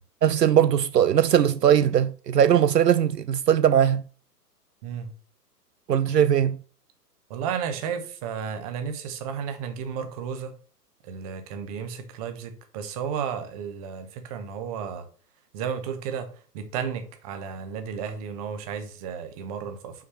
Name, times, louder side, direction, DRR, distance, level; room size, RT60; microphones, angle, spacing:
voice 1, 0.2-4.0 5.9-6.6, right 9 dB, 80° right, 0.6 m, -20 dB
voice 2, 4.8-5.1 7.3-10.6 11.0-15.1 15.5-20.0, right 7 dB, 25° right, 1.0 m, -33 dB
5.9 x 4.7 x 5.7 m
figure-of-eight pair, 120°, 49 cm